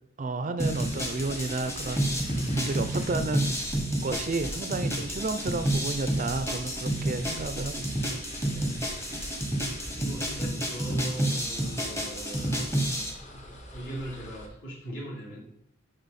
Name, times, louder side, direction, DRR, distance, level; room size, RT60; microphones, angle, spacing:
voice 1, 0.2-2.1 2.6-3.6 4.0-8.2, right 3 dB, 35° right, 10 dB, 0.4 m, -32 dB
sound 1, 0.6-14.5, equal, 35° left, 1.0 m, -44 dB
sound 2, 0.6-13.1, right 1 dB, 15° left, 1.0 m, -30 dB
voice 2, 8.5-9.1 9.9-12.6 13.3-15.4, right 1 dB, 60° left, -9 dB, 2.8 m, -40 dB
6.9 x 5.5 x 4.1 m, 0.72 s
head